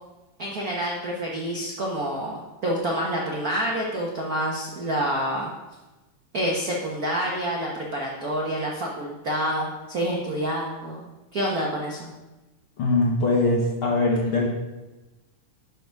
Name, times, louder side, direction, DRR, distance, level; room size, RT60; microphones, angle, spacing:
voice 1, 0.4-5.5 6.3-12.1, right 1 dB, 90° right, -3 dB, 0.8 m, -28 dB
voice 2, 12.8-14.5, left 2 dB, 60° left, -2 dB, 1.4 m, -22 dB
12.0 x 5.0 x 4.7 m, 1.1 s
omnidirectional pair, 3.6 m